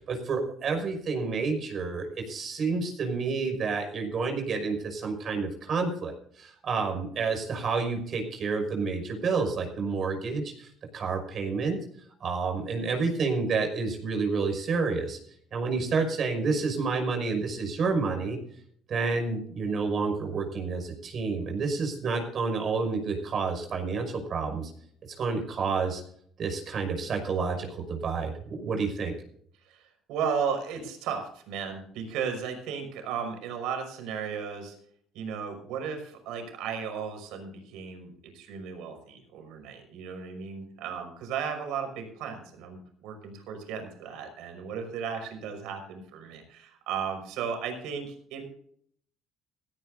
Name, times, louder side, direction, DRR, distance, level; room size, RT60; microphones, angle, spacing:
voice 1, 0.0-11.8 12.2-15.2 15.5-18.4 18.9-24.7 25.2-26.0 26.4-29.1, right 4 dB, 45° right, 4 dB, 5.7 m, -29 dB
voice 2, 29.6-34.8 35.1-48.4, right 6 dB, 80° right, 4 dB, 5.6 m, -35 dB
16.5 x 16.5 x 2.7 m, 0.62 s
cardioid pair, 110°, 0 cm